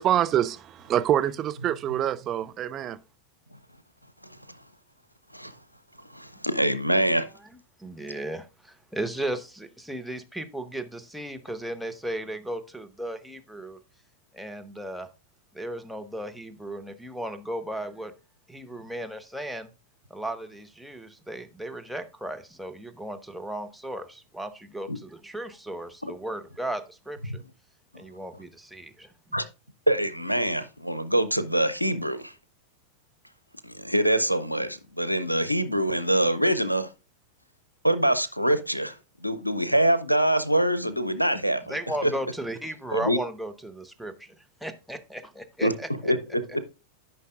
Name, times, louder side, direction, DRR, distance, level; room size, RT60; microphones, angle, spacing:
voice 1, 0.0-3.0, right 11 dB, 30° right, 0.4 m, -25 dB
voice 2, 6.1-7.2 24.9-25.0 26.0-26.1 29.3-29.4 29.9-32.3 33.6-36.9 37.8-38.9 39.2-41.8 42.0-42.1 42.9-43.2 45.6-45.7 46.0-46.6, right 1 dB, 90° left, 0.6 m, -24 dB
voice 3, 7.8-13.8 14.3-15.1 15.5-18.1 18.5-19.7 20.1-27.4 27.9-29.1 41.7-44.3 44.6-46.1, right 1 dB, ahead, 0.9 m, -35 dB
12.5 x 5.6 x 2.4 m
figure-of-eight pair, 90°, 0 cm